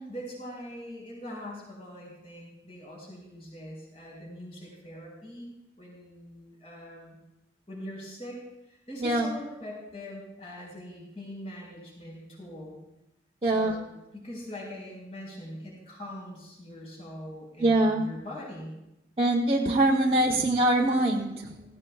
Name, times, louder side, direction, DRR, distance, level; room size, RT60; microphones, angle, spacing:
voice 1, 0.1-5.5 5.8-7.2 7.7-8.4 8.7-12.8 13.4-18.7, left 1 dB, 35° left, -2 dB, 4.6 m, -42 dB
voice 2, 13.4-13.7 17.6-18.1 19.2-21.6, right 1 dB, 30° right, -3 dB, 0.8 m, -23 dB
17.0 x 16.0 x 2.3 m, 0.91 s
head